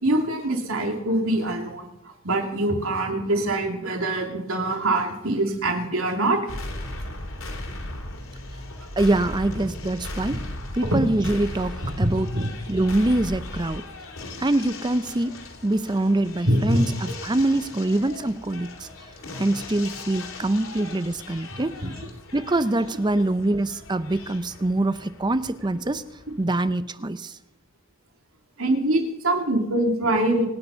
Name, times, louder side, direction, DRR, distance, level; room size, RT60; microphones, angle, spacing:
voice 1, 0.0-6.4 10.9-11.0 12.0-12.5 16.5-16.8 21.8-21.9 28.6-30.5, right 1 dB, 70° right, 3 dB, 2.9 m, -24 dB
sound 1, 6.5-26.4, left 2 dB, 70° left, 3.1 m, -38 dB
voice 2, 9.0-10.5 10.7-12.3 12.7-13.9 14.4-18.9 19.4-21.8 22.3-26.0 26.4-27.4, right 2 dB, 20° right, 13 dB, 0.5 m, -24 dB
26.0 x 9.7 x 5.6 m, 0.89 s
head